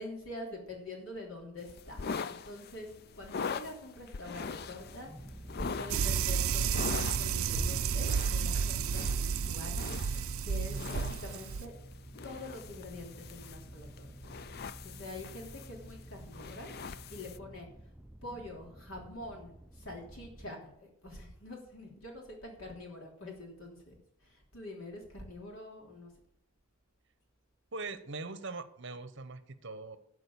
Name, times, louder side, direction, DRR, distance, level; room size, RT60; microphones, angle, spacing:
voice 1, 0.0-2.9 3.1-5.1 5.6-9.0 9.5-9.9 10.4-11.7 12.2-14.3 14.8-16.8 17.1-17.7 18.2-23.9 24.2-26.1, left 1 dB, 75° left, 0 dB, 3.3 m, -44 dB
sound 1, 1.6-17.4, left 5 dB, 45° left, 0.4 m, -43 dB
sound 2, 4.4-20.5, right 1 dB, 5° right, 0.5 m, -49 dB
sound 3, 5.9-11.7, right 7 dB, 80° right, 0.4 m, -31 dB
voice 2, 10.6-11.2 27.7-30.0, right 3 dB, 55° right, 11 dB, 1.0 m, -42 dB
12.5 x 5.0 x 8.5 m, 0.73 s
head